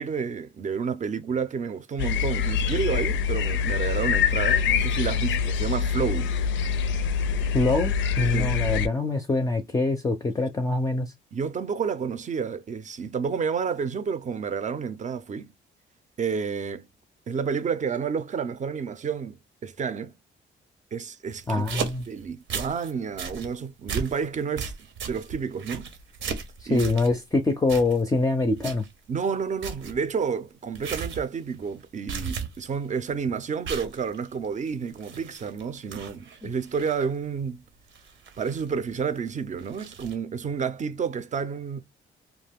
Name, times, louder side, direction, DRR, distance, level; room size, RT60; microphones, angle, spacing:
voice 1, 0.0-6.3 8.2-8.6 11.3-15.5 16.2-16.9 17.3-20.1 20.9-21.6 22.1-24.7 25.1-25.9 26.7-26.8 29.1-37.6 38.4-41.8, right 6 dB, 40° right, 0.5 m, -30 dB
sound 1, 2.0-8.9, left 6 dB, 70° left, 0.4 m, -25 dB
voice 2, 7.5-11.1 21.5-22.0 26.6-28.8, left 2 dB, 15° left, 0.5 m, -24 dB
sound 2, 21.3-22.9 23.2-23.5 23.9-24.2 24.6-27.2 27.7-28.2 28.6-28.9 29.2-29.3 29.6-30.0 30.7-31.3 31.6-31.8 32.1-32.7 33.1-33.2 33.6-35.6 35.9-37.0 37.9-38.9 39.6-40.1, right 6 dB, 75° right, 0.8 m, -35 dB
2.4 x 2.2 x 3.5 m
cardioid pair, 90°, 20 cm